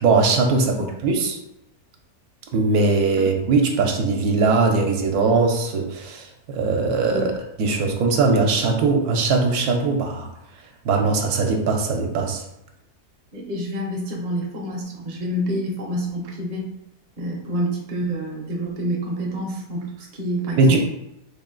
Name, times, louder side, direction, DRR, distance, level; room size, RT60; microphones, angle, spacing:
voice 1, 0.0-1.4 2.5-10.3 10.8-12.4 20.6-20.8, right 4 dB, 75° right, 2 dB, 1.1 m, -20 dB
voice 2, 13.3-16.7 17.2-20.8, equal, 45° right, -1 dB, 0.6 m, -28 dB
3.5 x 2.4 x 3.7 m, 0.83 s
omnidirectional pair, 1.6 m